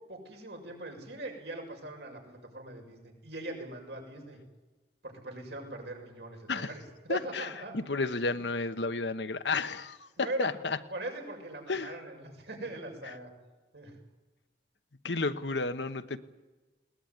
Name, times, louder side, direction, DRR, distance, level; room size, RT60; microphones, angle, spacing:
voice 1, 0.1-4.4 5.0-7.8 8.2-8.4 10.2-10.5 10.9-13.3 13.7-14.0, right 1 dB, 80° right, 2 dB, 6.5 m, -41 dB
voice 2, 7.1-10.8 11.7-11.9 15.0-16.2, left 3 dB, 90° left, 10 dB, 1.2 m, -32 dB
20.5 x 19.5 x 9.4 m, 1.2 s
head